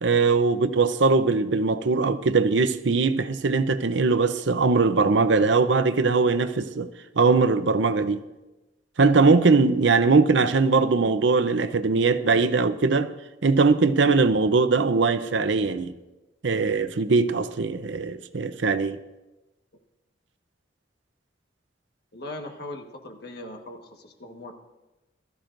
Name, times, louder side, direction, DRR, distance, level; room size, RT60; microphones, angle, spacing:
voice 1, 0.0-6.9 7.2-8.2 9.0-13.1 13.4-15.9 16.4-19.0, right 4 dB, 80° right, 0.7 m, -21 dB
voice 2, 22.1-24.5, left 1 dB, 60° left, 1.5 m, -39 dB
20.0 x 13.5 x 2.6 m
head